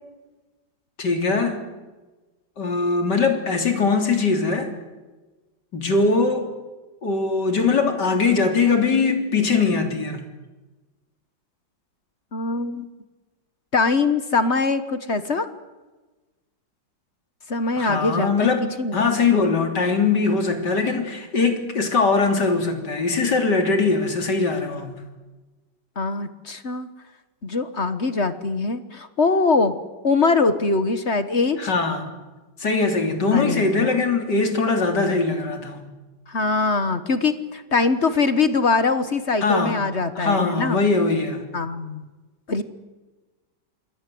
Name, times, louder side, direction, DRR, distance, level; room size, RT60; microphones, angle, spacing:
voice 1, 1.0-1.6 2.6-4.7 5.7-6.5 7.0-10.2 17.8-24.9 31.6-32.1 32.6-35.8 39.4-39.8 40.2-41.4, left 4 dB, 65° left, 5 dB, 3.9 m, -21 dB
voice 2, 12.3-12.9 13.7-15.5 17.5-18.9 26.0-26.9 27.4-29.7 30.0-31.7 33.3-34.0 36.3-40.8 41.5-42.1 42.5-42.6, left 4 dB, 40° left, 11 dB, 1.5 m, -22 dB
28.0 x 22.0 x 7.8 m, 1.2 s
omnidirectional pair, 2.0 m